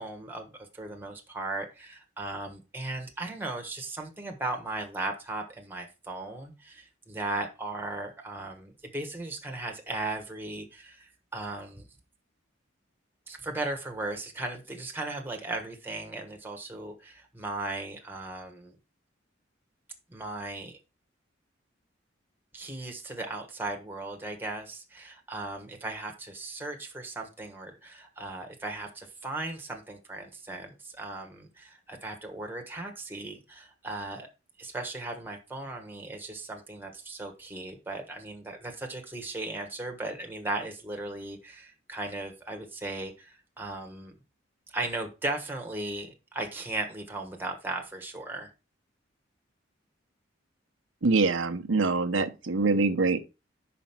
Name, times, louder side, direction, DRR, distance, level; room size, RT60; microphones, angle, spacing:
voice 1, 0.0-11.9 13.3-18.8 20.1-20.8 22.5-34.3 34.6-44.2 44.7-48.5, right 2 dB, 10° right, 1.3 m, -37 dB
voice 2, 51.0-53.2, right 3 dB, 80° right, 0.8 m, -24 dB
5.1 x 5.0 x 5.8 m
head